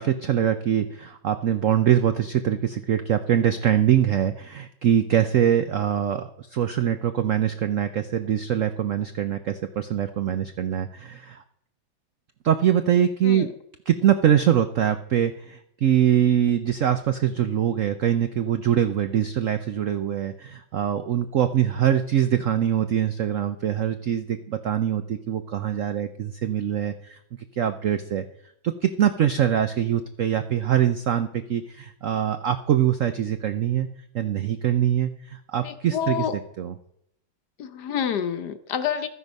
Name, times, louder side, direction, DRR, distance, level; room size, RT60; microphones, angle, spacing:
voice 1, 0.0-11.4 12.4-13.5 13.9-27.2 27.5-28.3 28.6-33.9 34.1-36.2 36.6-36.7, right 10 dB, 90° right, 10 dB, 0.6 m, -23 dB
voice 2, 35.6-36.4 37.6-39.1, left 8 dB, 60° left, 10 dB, 1.3 m, -28 dB
13.0 x 9.8 x 5.4 m, 0.73 s
omnidirectional pair, 2.2 m